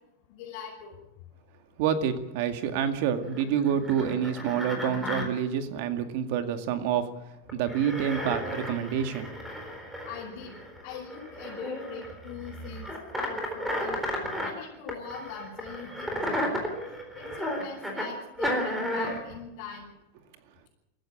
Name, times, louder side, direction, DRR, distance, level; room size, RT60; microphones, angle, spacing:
voice 1, 0.3-1.0 10.0-10.6 10.8-12.9 13.1-14.0 14.4-19.9, left 6 dB, 50° left, -4 dB, 6.5 m, -42 dB
voice 2, 1.8-7.1 7.5-9.3, right 8 dB, 55° right, 7 dB, 2.2 m, -28 dB
sound 1, 3.3-5.2 7.5-14.5 14.9-18.1 18.4-19.2, equal, 5° right, 4.0 m, -33 dB
24.5 x 14.5 x 8.9 m, 0.96 s
supercardioid pair, 160°, 0 cm